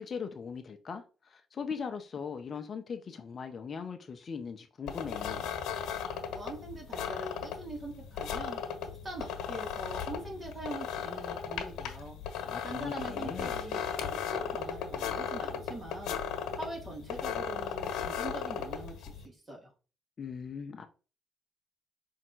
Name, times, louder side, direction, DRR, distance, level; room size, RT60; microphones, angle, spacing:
voice 1, 0.0-5.5 12.4-13.6 20.2-20.9, left 6 dB, 45° left, 0.9 m, -40 dB
sound 1, 4.9-19.2, left 7 dB, 85° left, 1.3 m, -36 dB
voice 2, 6.3-8.6 9.0-12.2 12.6-16.2 16.6-19.7, right 2 dB, 30° right, 3.5 m, -43 dB
5.7 x 3.8 x 4.6 m
cardioid pair, 90°, 0 cm